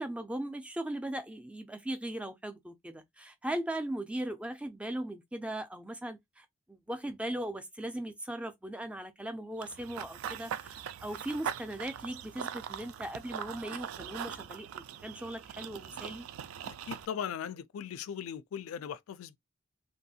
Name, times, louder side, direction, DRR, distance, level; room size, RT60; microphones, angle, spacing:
voice 1, 0.0-16.3, right 1 dB, 5° right, 0.3 m, -38 dB
Run / Bird vocalization bird call bird song, 9.6-17.1, right 9 dB, 90° right, 0.3 m, -41 dB
voice 2, 16.6-19.4, left 8 dB, 85° left, 0.3 m, -39 dB
2.9 x 2.4 x 2.7 m
head